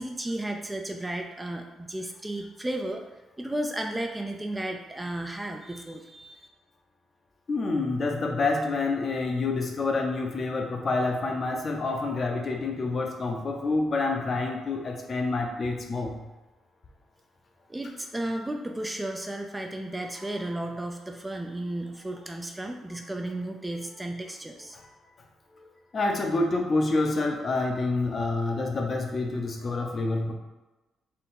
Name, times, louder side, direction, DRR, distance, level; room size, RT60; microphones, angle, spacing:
voice 1, 0.0-3.0 3.4-6.5 17.7-24.8, right 1 dB, 15° right, 3 dB, 0.4 m, -34 dB
voice 2, 7.5-16.2 24.7-24.8 25.6-25.7 25.9-30.3, left 3 dB, 40° left, 2 dB, 0.6 m, -27 dB
3.8 x 2.2 x 4.1 m, 1.1 s
cardioid pair, 90°, 0 cm